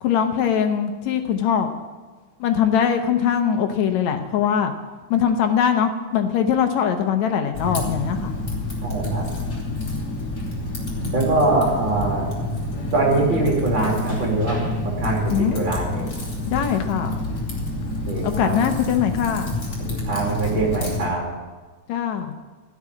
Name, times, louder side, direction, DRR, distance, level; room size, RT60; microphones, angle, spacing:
voice 1, 0.0-1.7 2.4-4.7 5.1-8.3 15.3-15.6 16.5-17.3 18.2-19.6 21.9-22.3, left 8 dB, 75° left, 6 dB, 2.2 m, -21 dB
Typing, 7.5-21.1, left 2 dB, 35° left, 3.3 m, -28 dB
voice 2, 8.8-9.3 11.0-12.3 12.9-16.1 18.1-18.6 19.8-21.2, right 2 dB, 40° right, -2 dB, 3.5 m, -23 dB
16.0 x 6.4 x 9.7 m, 1.4 s
omnidirectional pair, 3.3 m